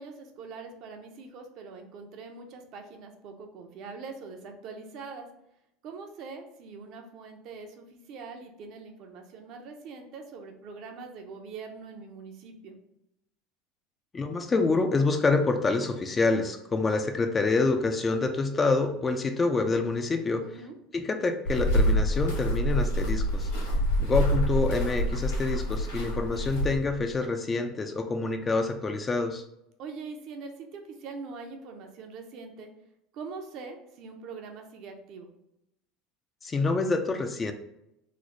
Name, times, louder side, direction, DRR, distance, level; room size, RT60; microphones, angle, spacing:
voice 1, 0.0-5.3 5.8-12.8 20.4-20.8 29.8-32.7 33.1-35.3, right 4 dB, 55° right, 4 dB, 0.6 m, -43 dB
voice 2, 14.1-20.6 20.9-23.5 24.0-29.4 36.4-37.5, left 3 dB, 20° left, 6 dB, 0.3 m, -27 dB
sound 1, 21.5-27.0, equal, 90° left, 1.2 m, -26 dB
3.2 x 2.0 x 3.8 m, 0.85 s
supercardioid pair, 120°, 0 cm